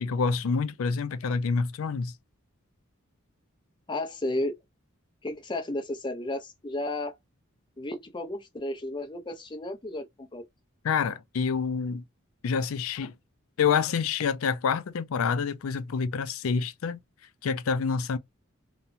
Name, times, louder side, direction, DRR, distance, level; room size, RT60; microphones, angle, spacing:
voice 1, 0.0-2.1 10.8-12.0 12.4-13.1 13.6-17.0 17.4-18.2, left 5 dB, 80° left, 0.4 m, -27 dB
voice 2, 3.9-4.6 5.2-7.1 7.8-10.4, left 1 dB, 20° left, 0.5 m, -33 dB
2.8 x 2.2 x 2.4 m
head